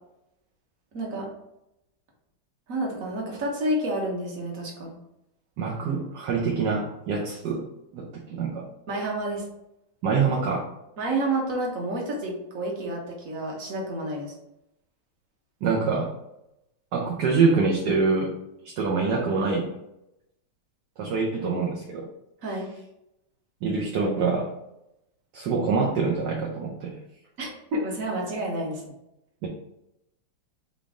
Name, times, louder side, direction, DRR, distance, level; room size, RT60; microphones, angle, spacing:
voice 1, 0.9-1.3 2.7-4.9 8.9-9.4 11.0-14.3 22.4-22.7 27.4-28.9, right 1 dB, 50° right, -1 dB, 1.5 m, -29 dB
voice 2, 5.6-7.7 7.9-8.7 10.0-10.7 15.6-16.1 16.9-18.3 18.8-19.7 21.0-22.1 23.6-24.5 25.3-26.9 29.4-29.5, right 4 dB, 70° right, -1 dB, 1.2 m, -25 dB
3.9 x 3.6 x 3.6 m, 0.86 s
omnidirectional pair, 2.1 m